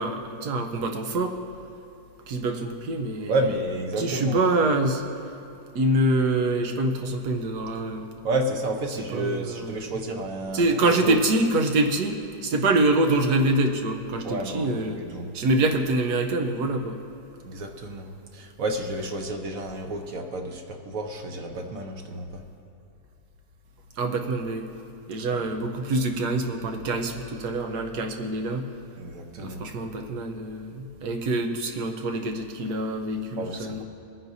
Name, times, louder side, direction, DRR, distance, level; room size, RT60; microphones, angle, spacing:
voice 1, 0.0-1.4 2.3-3.3 4.0-5.3 5.7-8.1 9.1-9.9 10.5-15.0 15.3-17.0 24.0-24.7 25.1-28.7 29.4-33.8, right 2 dB, 75° right, 4 dB, 1.4 m, -25 dB
voice 2, 3.3-4.4 8.2-11.2 14.2-15.3 17.4-22.4 25.3-25.4 29.0-29.6 33.4-33.8, right 1 dB, 60° right, 3 dB, 1.2 m, -31 dB
22.5 x 9.7 x 2.7 m, 2.7 s
omnidirectional pair, 1.7 m